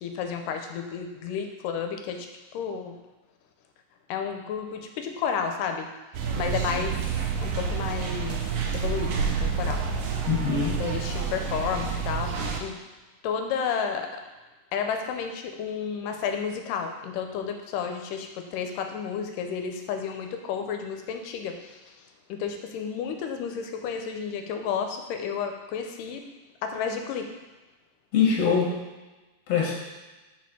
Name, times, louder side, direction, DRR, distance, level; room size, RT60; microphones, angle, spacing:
voice 1, 0.0-2.3 2.5-3.0 4.1-5.9 6.4-7.0 7.4-8.4 8.7-9.8 10.8-12.8 13.2-14.2 14.7-21.8 22.3-26.2 26.6-27.3, left 6 dB, 85° left, 5 dB, 2.2 m, -31 dB
sound 1, 6.1-12.6, right 5 dB, 80° right, 2.3 m, -29 dB
voice 2, 10.3-10.8 28.1-28.7 29.5-29.7, left 6 dB, 55° left, -3 dB, 2.2 m, -23 dB
6.0 x 4.2 x 6.1 m, 1.2 s
omnidirectional pair, 3.9 m